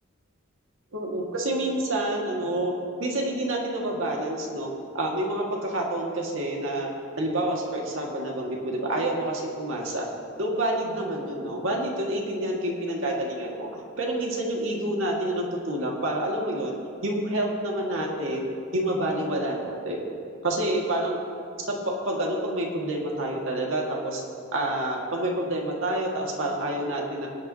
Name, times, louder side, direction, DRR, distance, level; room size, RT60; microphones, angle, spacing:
voice 1, 0.9-2.7 3.0-4.7 4.9-6.9 7.2-10.1 10.4-16.7 17.0-18.5 18.7-20.0 20.4-21.2 21.7-24.2 24.5-27.3, right 1 dB, 75° right, -1 dB, 1.9 m, -28 dB
21.0 x 9.1 x 2.9 m, 2.4 s
head